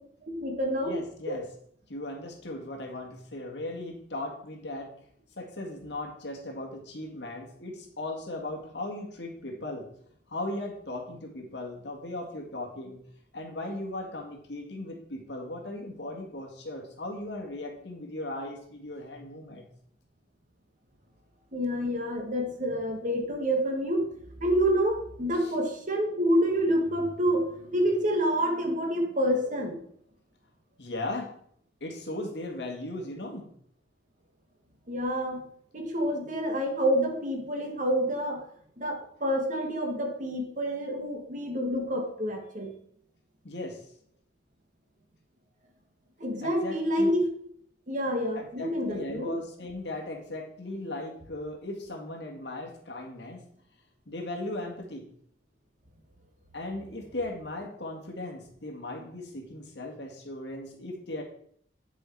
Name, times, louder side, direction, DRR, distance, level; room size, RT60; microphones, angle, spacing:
voice 1, 0.3-1.0 1.3-1.4 21.5-24.1 24.4-29.8 34.9-35.4 35.7-38.4 38.8-42.8 46.2-47.3 47.9-49.3 59.0-59.1, equal, 45° right, 3 dB, 1.8 m, -28 dB
voice 2, 0.8-1.5 1.9-4.9 5.4-9.9 10.3-13.0 13.3-19.7 25.4-25.5 30.8-31.3 31.8-33.5 43.4-43.9 46.4-47.1 48.3-53.5 54.1-55.1 56.5-61.2, left 2 dB, 70° left, 2 dB, 1.8 m, -37 dB
8.9 x 6.8 x 4.7 m, 0.64 s
head